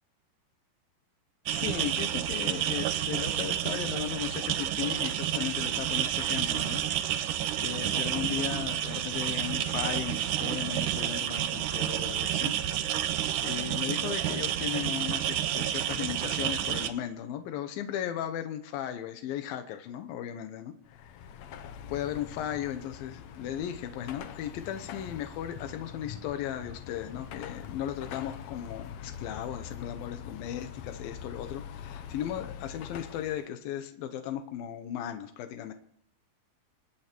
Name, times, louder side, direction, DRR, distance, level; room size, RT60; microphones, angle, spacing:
voice 1, 1.5-6.8 7.6-12.5 13.4-20.7 21.9-35.7, left 10 dB, 90° left, 8 dB, 2.8 m, -36 dB
sound 1, 1.5-16.9, right 11 dB, 75° right, 2.2 m, -30 dB
Car passing by / Traffic noise roadway noise / Engine, 20.9-33.5, left 9 dB, 75° left, 1.7 m, -43 dB
27.0 x 9.4 x 4.5 m, 0.72 s
omnidirectional pair, 4.0 m